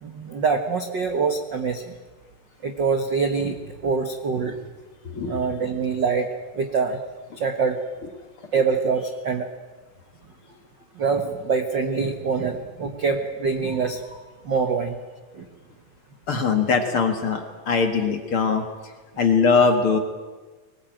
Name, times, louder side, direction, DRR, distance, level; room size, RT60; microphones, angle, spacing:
voice 1, 0.0-1.9 2.6-4.6 5.3-6.3 6.5-7.0 7.4-7.8 8.5-9.5 11.0-14.2 14.4-15.0 15.3-15.4, right 5 dB, 75° right, 5 dB, 1.0 m, -24 dB
voice 2, 5.0-5.4 16.3-18.7 19.2-20.0, left 5 dB, 45° left, 5 dB, 2.0 m, -21 dB
22.5 x 20.0 x 9.1 m, 1.3 s
omnidirectional pair, 4.3 m